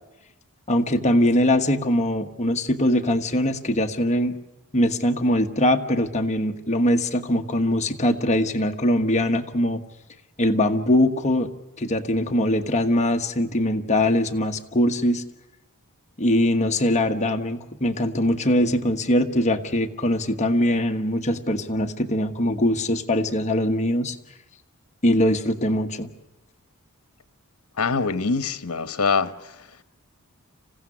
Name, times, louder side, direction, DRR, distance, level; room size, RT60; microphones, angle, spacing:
voice 1, 0.7-4.4 4.7-9.8 10.4-11.5 11.8-15.2 16.2-24.2 25.0-26.1, left 1 dB, 30° left, 1.3 m, -22 dB
voice 2, 27.8-29.7, left 4 dB, 75° left, 1.2 m, -24 dB
27.0 x 16.0 x 9.8 m
head